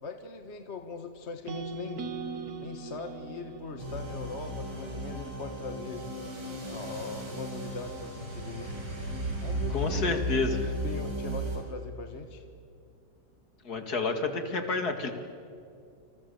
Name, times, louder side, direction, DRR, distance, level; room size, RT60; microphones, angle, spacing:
voice 1, 0.0-2.0 2.6-6.1 6.7-8.7 9.4-10.4 10.8-12.5, left 3 dB, 40° left, 6 dB, 1.8 m, -40 dB
sound 1, 1.5-5.6, right 4 dB, 55° right, 2.1 m, -41 dB
sound 2, 3.8-11.6, right 1 dB, 85° right, 6.7 m, -35 dB
voice 2, 9.7-10.7 13.6-15.1, left 3 dB, 60° left, 6 dB, 2.7 m, -29 dB
28.5 x 27.5 x 7.1 m, 2.4 s
omnidirectional pair, 1.9 m